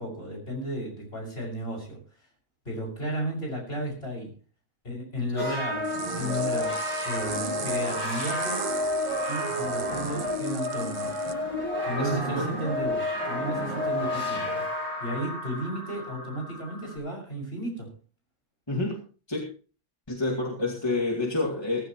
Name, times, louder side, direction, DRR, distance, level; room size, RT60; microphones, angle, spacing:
voice 1, 0.0-2.0 2.6-4.3 4.8-5.9 6.2-8.7 9.3-11.2 11.8-17.9, equal, 50° left, 0 dB, 6.7 m, -34 dB
sound 1, 5.4-17.0, left 1 dB, 20° right, 7.4 m, -30 dB
sound 2, 5.8-11.3, right 9 dB, 75° right, 1.3 m, -40 dB
voice 2, 12.0-12.5 18.7-19.0 19.3-19.5 20.1-21.8, left 2 dB, 20° left, -2 dB, 2.4 m, -28 dB
18.0 x 15.0 x 3.1 m, 0.38 s
omnidirectional pair, 1.4 m